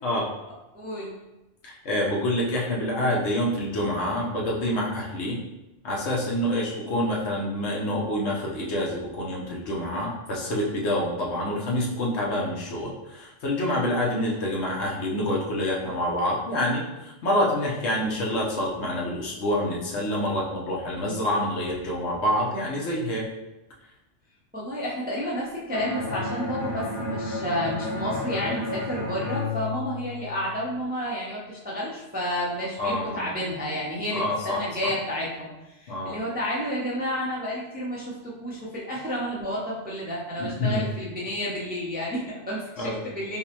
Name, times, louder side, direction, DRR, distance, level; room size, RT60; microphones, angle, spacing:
voice 1, 0.0-0.3 1.6-5.4 5.8-23.3 32.8-33.3 34.1-34.9 35.9-36.2 40.4-40.8 42.8-43.0, left 1 dB, 65° left, -3 dB, 1.0 m, -27 dB
voice 2, 0.7-1.1 24.5-43.4, equal, 10° right, -5 dB, 0.4 m, -31 dB
Bowed string instrument, 25.7-30.6, left 3 dB, 30° left, 1.4 m, -32 dB
5.2 x 2.1 x 2.9 m, 0.98 s
omnidirectional pair, 1.3 m